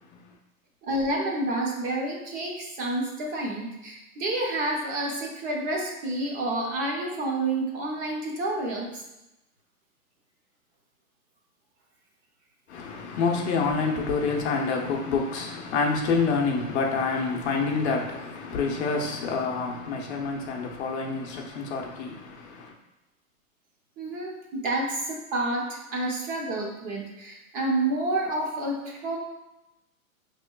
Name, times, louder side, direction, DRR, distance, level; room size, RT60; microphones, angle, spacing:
voice 1, 0.8-9.0 24.0-29.2, right 2 dB, 20° right, 0.5 m, -29 dB
voice 2, 12.7-22.7, left 4 dB, 50° left, 0.7 m, -27 dB
5.6 x 3.1 x 2.2 m
hypercardioid pair, 125°, 43 cm